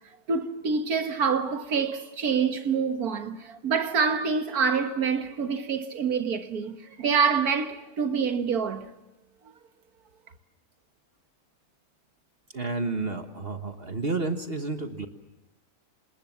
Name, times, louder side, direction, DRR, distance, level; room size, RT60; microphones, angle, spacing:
voice 1, 0.3-8.9, right 5 dB, 90° right, 1.9 m, -26 dB
voice 2, 12.5-15.1, right 3 dB, 40° right, 1.5 m, -30 dB
27.5 x 20.0 x 7.3 m
omnidirectional pair, 1.6 m